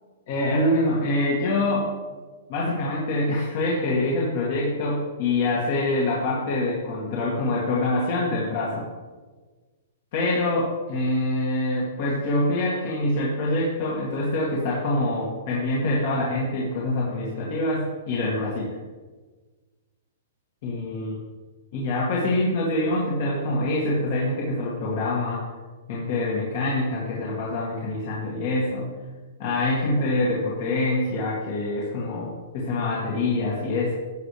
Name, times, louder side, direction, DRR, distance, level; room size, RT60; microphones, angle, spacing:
voice 1, 0.3-1.9 2.5-8.8 10.1-18.7 20.6-21.1 21.7-25.4 25.9-28.8 29.4-33.9, left 2 dB, 50° left, -5 dB, 2.4 m, -25 dB
13.0 x 8.1 x 3.3 m, 1.3 s
hypercardioid pair, 155°, 0 cm